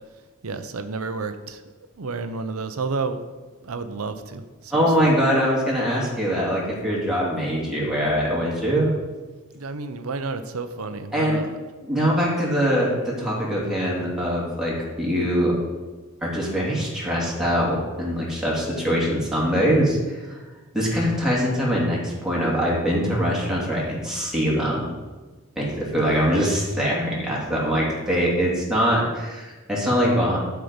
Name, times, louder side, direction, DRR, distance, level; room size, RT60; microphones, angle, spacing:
voice 1, 0.4-1.6 2.0-3.2 3.6-5.2 9.5-11.6, right 4 dB, 90° right, 9 dB, 0.7 m, -31 dB
voice 2, 4.7-8.9 11.1-11.5 11.8-15.6 16.2-20.4 20.7-24.9 25.6-30.4, equal, 5° right, -6 dB, 2.4 m, -23 dB
12.0 x 4.6 x 5.2 m, 1.3 s
head